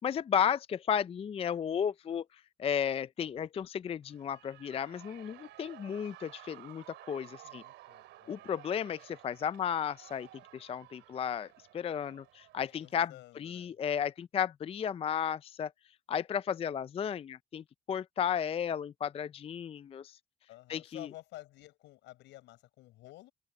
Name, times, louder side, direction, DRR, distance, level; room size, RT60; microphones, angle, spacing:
voice 1, 0.0-2.2 2.6-7.6 8.3-10.3 10.5-11.5 11.7-13.1 13.4-15.7 16.1-20.2 20.7-21.1, left 8 dB, 30° left, 0.4 m, -33 dB
Shout / Cheering, 4.0-13.0, right 15 dB, 80° right, 3.1 m, -54 dB
voice 2, 7.2-8.6 12.8-13.8 20.5-23.3, left 17 dB, 80° left, 7.7 m, -52 dB
open air
cardioid pair, 85°, 18 cm